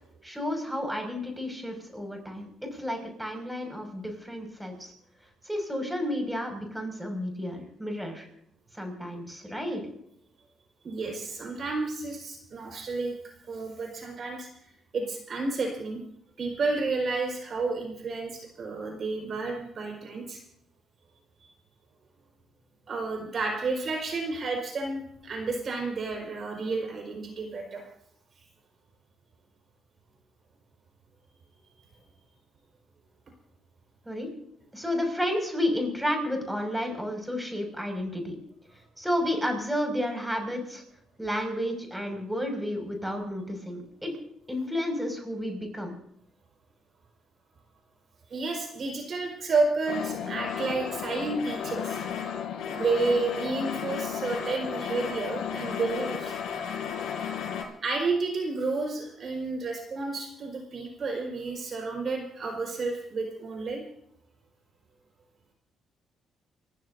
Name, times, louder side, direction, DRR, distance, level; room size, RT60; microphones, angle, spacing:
voice 1, 0.2-4.9 5.4-8.3 8.7-9.8 34.0-34.3 34.7-38.4 39.0-40.8 41.2-44.2 44.5-45.9, left 1 dB, 5° right, 3 dB, 6.3 m, -31 dB
voice 2, 10.8-13.1 13.5-14.5 14.9-16.0 16.4-20.4 22.9-27.9 48.3-52.0 52.7-56.3 57.8-63.8, right 3 dB, 50° right, 2 dB, 5.2 m, -31 dB
sound 1, 49.9-57.6, left 8 dB, 80° left, 4.6 m, -34 dB
29.5 x 15.5 x 2.8 m, 0.73 s
cardioid pair, 90°, 0 cm